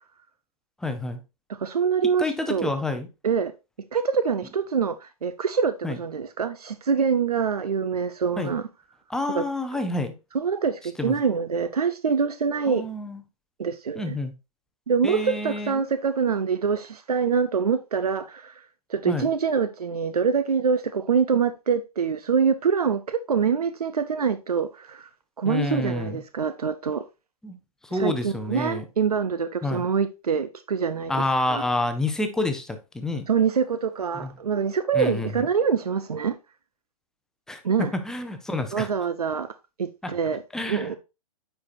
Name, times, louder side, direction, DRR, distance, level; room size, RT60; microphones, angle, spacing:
voice 1, 0.8-1.2 2.2-3.1 5.8-6.0 8.4-8.5 9.1-10.1 11.0-11.2 12.7-13.2 13.9-14.3 15.0-15.8 19.1-19.3 25.4-26.2 27.4-27.6 27.8-28.8 29.6-29.8 31.1-33.3 34.1-34.3 34.9-35.5 37.5-38.9 40.0-40.1 40.5-41.0, left 2 dB, 5° left, 0.6 m, -28 dB
voice 2, 1.5-2.7 3.2-3.5 3.9-8.6 9.3-9.4 10.3-12.8 13.6-14.2 14.9-18.6 18.9-25.1 25.4-27.0 27.9-31.1 31.5-31.6 33.3-36.4 37.6-37.9 38.7-39.5 39.8-41.0, right 6 dB, 90° right, 0.5 m, -25 dB
9.4 x 4.5 x 2.6 m
hypercardioid pair, 125°, 19 cm